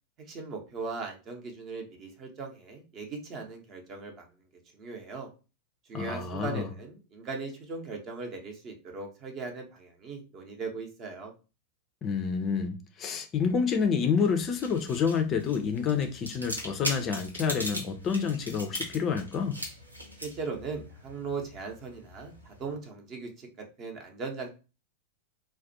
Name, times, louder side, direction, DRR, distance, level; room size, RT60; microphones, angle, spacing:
voice 1, 0.3-4.3 4.7-5.3 5.9-11.3 20.2-24.5, right 4 dB, 35° right, 0.7 m, -39 dB
voice 2, 5.9-6.7 12.0-19.6, left 6 dB, 30° left, 0.4 m, -28 dB
sound 1, 14.3-22.7, equal, 85° right, 0.6 m, -40 dB
2.4 x 2.1 x 2.6 m
figure-of-eight pair, 90°, 0 cm